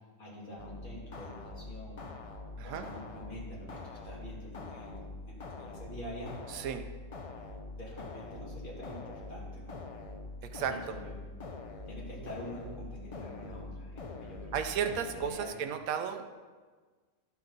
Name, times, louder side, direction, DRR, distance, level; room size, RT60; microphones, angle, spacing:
voice 1, 0.2-2.0 2.5-6.3 7.7-9.8 10.7-11.1 11.9-14.6 15.2-15.6, equal, 35° left, -6 dB, 2.4 m, -46 dB
sound 1, 0.6-15.3, left 3 dB, 60° left, 0.3 m, -44 dB
voice 2, 6.5-6.8 10.4-11.0 14.5-16.2, right 7 dB, 80° right, 6 dB, 1.1 m, -34 dB
11.5 x 5.7 x 3.9 m, 1.4 s
omnidirectional pair, 1.5 m